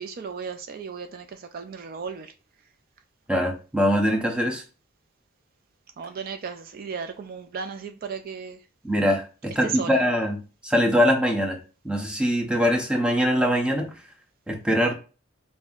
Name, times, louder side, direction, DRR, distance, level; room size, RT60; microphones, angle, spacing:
voice 1, 0.0-2.3 6.0-8.6 9.6-10.0, right 6 dB, 45° right, 0.3 m, -35 dB
voice 2, 3.3-4.6 8.8-11.6 11.8-13.9 14.5-14.9, equal, 5° right, 0.7 m, -23 dB
5.3 x 2.6 x 2.4 m
head